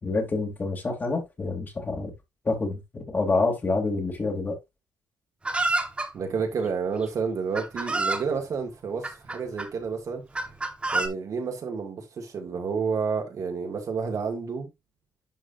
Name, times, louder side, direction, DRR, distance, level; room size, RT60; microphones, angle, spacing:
voice 1, 0.0-2.1 2.4-4.6, left 3 dB, 30° left, 3.0 m, -27 dB
Chicken rooster, 5.4-6.1 7.0-7.1 7.5-8.3 9.0-9.7 10.3-11.1, right 2 dB, 15° right, 1.4 m, -27 dB
voice 2, 6.1-10.2 10.9-14.7, right 5 dB, 55° right, 2.3 m, -30 dB
11.0 x 5.0 x 2.6 m
cardioid pair, 125°, 7 cm